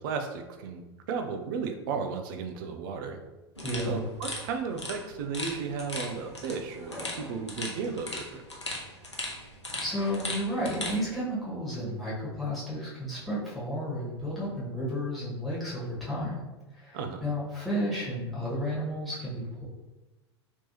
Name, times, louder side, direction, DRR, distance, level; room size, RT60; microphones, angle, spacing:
voice 1, 0.0-3.2 3.8-8.4 16.9-17.2, right 5 dB, 50° right, 6 dB, 0.5 m, -34 dB
sound 1, 3.6-11.0, left 1 dB, 90° left, 0.7 m, -38 dB
voice 2, 3.6-4.0 9.8-16.4 16.7-19.6, equal, ahead, -9 dB, 1.5 m, -32 dB
3.3 x 2.9 x 2.7 m, 1.1 s
figure-of-eight pair, 85°, 14 cm